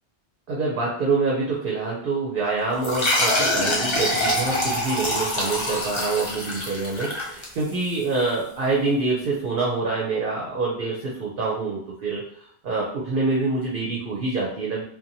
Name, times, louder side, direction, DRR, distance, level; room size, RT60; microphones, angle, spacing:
voice 1, 0.5-12.2 12.6-14.8, right 3 dB, 60° right, -3 dB, 0.7 m, -26 dB
sound 1, 2.8-8.0, left 1 dB, 35° left, 0.5 m, -25 dB
2.8 x 2.2 x 2.6 m, 0.62 s
omnidirectional pair, 1.1 m